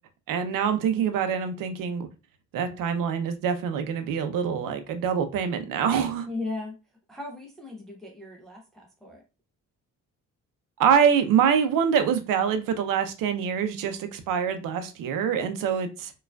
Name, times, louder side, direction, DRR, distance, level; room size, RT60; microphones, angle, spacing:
voice 1, 0.3-2.1 2.5-6.3 10.8-16.1, right 7 dB, 85° right, 0.6 m, -25 dB
voice 2, 6.3-6.7 7.1-9.2, left 3 dB, ahead, 0.5 m, -37 dB
4.6 x 2.4 x 2.2 m
cardioid pair, 160°, 32 cm